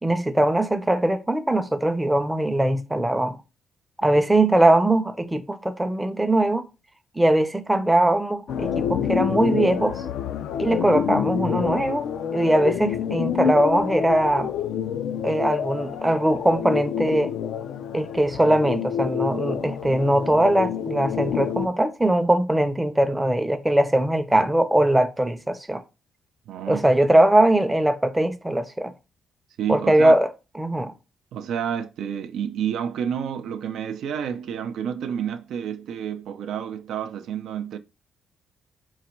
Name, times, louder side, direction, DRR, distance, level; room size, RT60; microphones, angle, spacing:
voice 1, 0.0-3.4 4.0-6.7 7.1-10.0 10.6-12.0 12.3-14.5 15.2-17.3 17.9-25.8 26.7-28.9 29.7-30.9, right 1 dB, 10° right, 0.5 m, -21 dB
sound 1, 8.5-21.7, left 8 dB, 75° left, 0.3 m, -28 dB
voice 2, 26.5-26.8 29.6-30.1 31.3-37.8, right 8 dB, 75° right, 0.3 m, -29 dB
3.9 x 2.1 x 4.3 m
cardioid pair, 90°, 0 cm